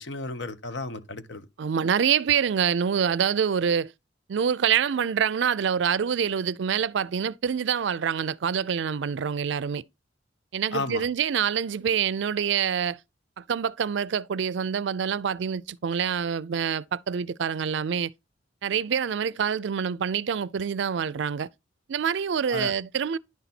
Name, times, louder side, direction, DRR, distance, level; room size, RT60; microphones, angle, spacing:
voice 1, 0.0-1.4 10.7-11.0 22.5-22.7, left 3 dB, 65° left, 1.0 m, -33 dB
voice 2, 1.6-3.9 4.3-9.8 10.5-13.0 13.4-18.1 18.6-21.5 21.9-23.2, right 7 dB, 70° right, 0.4 m, -26 dB
10.5 x 4.0 x 4.3 m
head